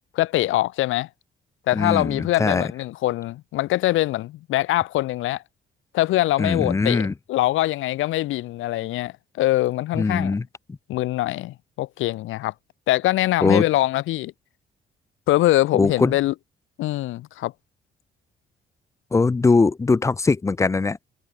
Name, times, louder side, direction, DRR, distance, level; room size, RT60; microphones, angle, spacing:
voice 1, 0.1-1.1 1.7-5.4 5.9-10.3 10.9-12.5 12.9-14.3 15.3-16.3 16.8-17.5, left 16 dB, 85° left, 0.8 m, -23 dB
voice 2, 1.7-2.7 6.4-7.1 10.0-10.4 13.4-13.7 15.7-16.2 19.1-21.0, left 4 dB, 15° left, 0.3 m, -21 dB
cardioid pair, 90°, 20 cm